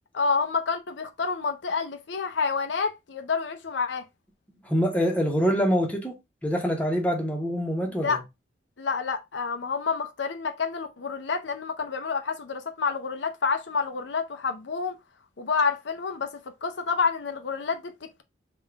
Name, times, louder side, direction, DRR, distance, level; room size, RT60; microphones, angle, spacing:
voice 1, 0.1-4.0 8.0-8.2 8.8-15.0 15.4-18.2, left 5 dB, 70° left, 0.6 m, -28 dB
voice 2, 4.6-8.2, equal, 10° left, 1.0 m, -25 dB
3.7 x 2.5 x 4.5 m
head